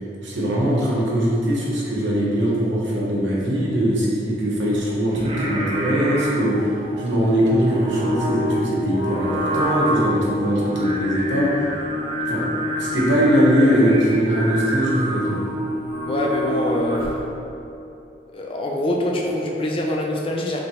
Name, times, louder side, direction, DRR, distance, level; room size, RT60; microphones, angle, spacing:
voice 1, 0.2-11.7 12.3-12.4 12.8-15.4, equal, 85° right, -5 dB, 0.9 m, -21 dB
Singing, 5.1-17.3, equal, 30° right, 0.5 m, -26 dB
voice 2, 16.0-17.1 18.3-20.6, left 1 dB, 30° left, -1 dB, 0.4 m, -24 dB
3.2 x 2.5 x 4.1 m, 2.8 s
head